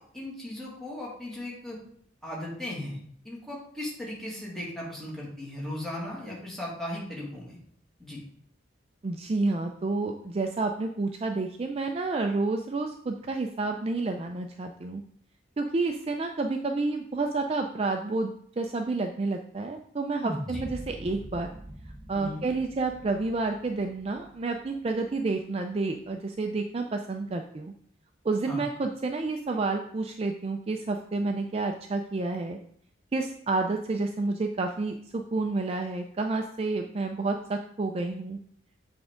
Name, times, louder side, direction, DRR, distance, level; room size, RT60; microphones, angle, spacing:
voice 1, 0.1-1.8 2.2-3.0 3.2-7.6 8.0-8.2 20.5-20.6 22.1-22.4 28.5-28.6, left 1 dB, ahead, -5 dB, 2.0 m, -37 dB
voice 2, 9.0-15.0 15.6-21.5 22.1-27.7 28.2-32.6 33.1-38.4, right 3 dB, 30° right, 4 dB, 0.4 m, -30 dB
sound 1, 20.2-24.6, equal, 15° right, 0.7 m, -41 dB
7.2 x 3.5 x 5.0 m, 0.65 s
head